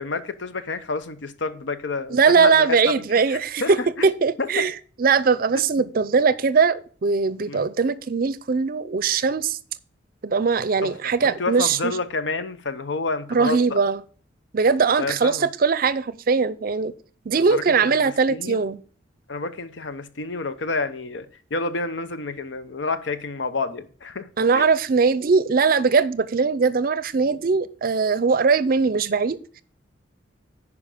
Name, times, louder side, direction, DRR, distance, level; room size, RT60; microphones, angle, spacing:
voice 1, 0.0-2.9 3.3-4.1 4.4-4.7 7.5-7.7 10.8-10.9 11.2-13.8 15.0-15.5 17.3-18.6 19.3-21.3 21.5-24.3 24.5-24.6, left 3 dB, 75° left, 0.8 m, -29 dB
voice 2, 2.1-4.7 5.0-9.6 10.2-11.9 13.3-14.0 14.5-16.9 17.3-18.8 24.4-29.6, right 5 dB, 50° right, 0.5 m, -20 dB
10.0 x 4.8 x 5.0 m
head